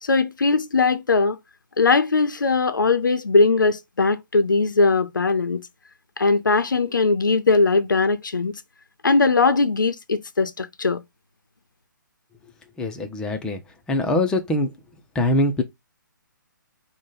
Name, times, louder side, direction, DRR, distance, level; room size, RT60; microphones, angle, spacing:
voice 1, 0.0-1.4 1.8-5.7 6.2-8.5 9.0-11.0, left 3 dB, 75° left, 0.6 m, -20 dB
voice 2, 12.8-13.6 13.9-14.7 15.2-15.6, left 1 dB, 5° left, 0.5 m, -22 dB
5.0 x 2.2 x 3.8 m
figure-of-eight pair, 135°, 11 cm